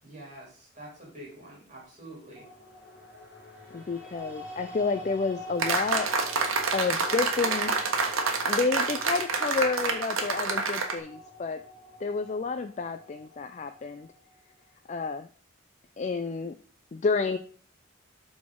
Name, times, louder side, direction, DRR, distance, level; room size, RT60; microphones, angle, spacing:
voice 1, 0.0-2.4, right 1 dB, 35° right, -4 dB, 3.0 m, -46 dB
sound 1, 2.4-14.6, left 1 dB, 5° right, 2.5 m, -45 dB
voice 2, 3.7-6.1 6.7-7.7 8.5-11.6 12.0-14.1 14.9-15.3 16.0-16.6 16.9-17.4, left 4 dB, 35° left, 8 dB, 0.3 m, -30 dB
sound 2, 5.6-11.0, right 4 dB, 85° right, 1.2 m, -28 dB
12.0 x 4.1 x 3.7 m, 0.43 s
head